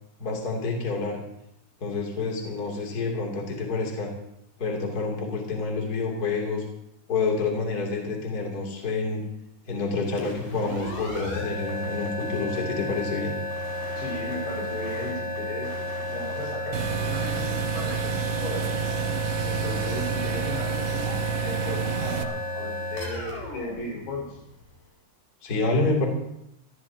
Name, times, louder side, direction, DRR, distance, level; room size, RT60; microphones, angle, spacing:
voice 1, 0.2-1.2 1.8-4.1 4.6-6.6 7.1-9.2 9.7-13.4 25.4-26.1, left 3 dB, 25° left, 0 dB, 2.9 m, -28 dB
sound 1, 10.1-24.7, left 1 dB, 55° left, 5.5 m, -33 dB
voice 2, 14.0-15.8 16.1-18.8 19.4-24.4, left 1 dB, 85° left, -2 dB, 7.1 m, -36 dB
sound 2, 16.7-22.2, right 10 dB, 90° right, 3.0 m, -29 dB
26.0 x 15.0 x 2.9 m, 0.80 s
omnidirectional pair, 4.6 m